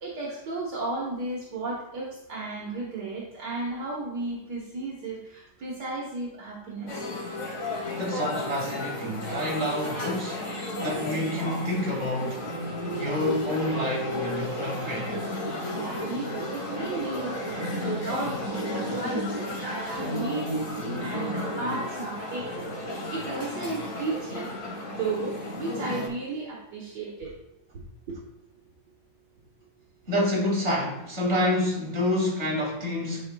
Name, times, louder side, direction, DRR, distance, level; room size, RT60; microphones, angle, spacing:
voice 1, 0.0-6.9 10.9-11.0 15.7-20.5 21.0-22.6 23.1-27.3, right 3 dB, 65° right, 1.8 m, -34 dB
sound 1, 6.9-26.1, left 1 dB, 60° left, 2.0 m, -33 dB
voice 2, 8.0-12.5 12.9-15.1 30.1-33.2, left 1 dB, 35° right, 2.4 m, -28 dB
11.0 x 5.3 x 2.2 m
omnidirectional pair, 2.0 m